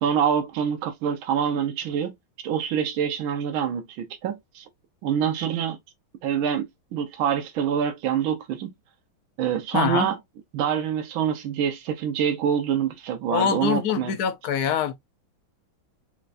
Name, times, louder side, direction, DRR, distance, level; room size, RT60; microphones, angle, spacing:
voice 1, 0.0-2.1 2.4-4.6 5.0-5.8 6.2-6.6 6.9-8.7 9.4-10.2 10.5-14.1, right 8 dB, 80° right, 1.5 m, -25 dB
voice 2, 9.7-10.1 13.3-14.9, left 8 dB, 65° left, 1.0 m, -24 dB
4.4 x 3.1 x 2.5 m
omnidirectional pair, 2.3 m